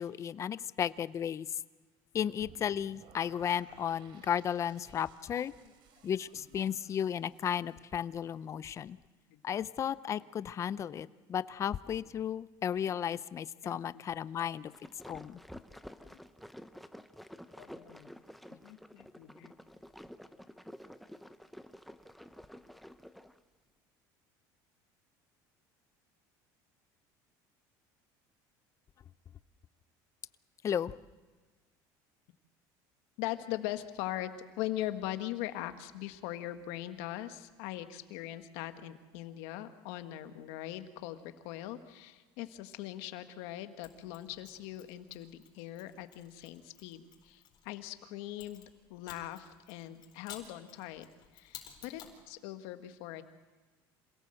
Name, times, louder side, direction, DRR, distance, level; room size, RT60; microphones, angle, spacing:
voice 1, 0.0-1.5 2.1-5.5 6.0-9.0 9.4-14.7 15.1-15.4 30.6-30.9, left 9 dB, 35° left, 17 dB, 0.6 m, -34 dB
sound 1, 2.4-8.4, right 6 dB, 60° right, 3.6 m, -60 dB
voice 2, 13.6-14.1 14.4-15.2 15.7-16.2 17.6-18.1 18.5-19.5 33.2-34.3 34.6-51.1 51.3-53.2, left 14 dB, 80° left, 8 dB, 1.6 m, -41 dB
sound 2, 14.5-23.4, equal, ahead, 0.8 m, -51 dB
Mechanisms, 43.8-47.7 48.4-52.2, left 10 dB, 50° left, 4.2 m, -54 dB
27.0 x 17.5 x 7.8 m, 1.4 s
cardioid pair, 125°, 9 cm